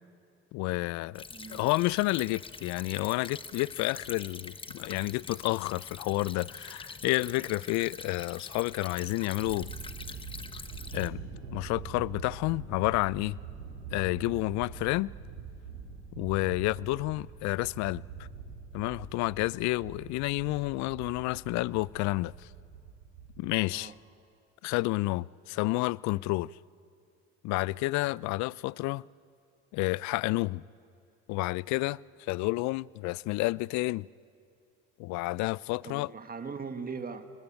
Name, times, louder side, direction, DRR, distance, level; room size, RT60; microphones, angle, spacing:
voice 1, 0.5-1.2 1.5-9.7 10.9-11.2 11.5-13.4 13.9-15.1 16.2-18.0 18.7-22.3 23.4-23.9 24.6-26.5 27.4-29.0 29.7-30.6 31.3-34.1 35.0-36.1, left 21 dB, 55° left, 0.5 m, -30 dB
Stream / Trickle dribble, 1.1-11.1, left 4 dB, 15° left, 1.0 m, -45 dB
voice 2, 1.3-1.6 23.7-24.0 35.8-37.2, right 5 dB, 25° right, 1.8 m, -39 dB
Thunder, 9.3-23.6, right 6 dB, 90° right, 4.5 m, -44 dB
24.0 x 20.0 x 9.1 m
hypercardioid pair, 75°, 33 cm